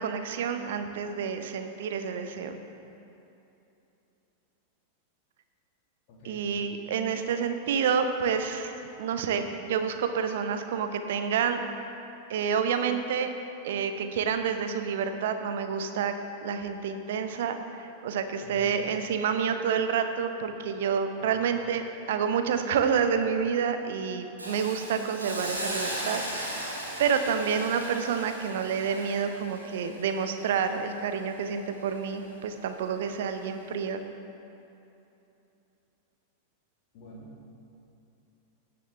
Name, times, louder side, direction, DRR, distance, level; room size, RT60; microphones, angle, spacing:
voice 1, 0.0-2.6 6.2-11.6 12.3-13.3 13.6-16.2 16.4-26.7 27.0-34.0, right 6 dB, 55° right, 8 dB, 0.7 m, -29 dB
voice 2, 6.1-6.5 18.4-18.9 21.1-21.4 36.9-37.5, equal, 45° left, -4 dB, 2.4 m, -47 dB
Hiss, 24.4-31.4 31.8-32.0, right 1 dB, 85° right, 2.0 m, -37 dB
17.0 x 6.9 x 3.3 m, 2.9 s
figure-of-eight pair, 90°, 0 cm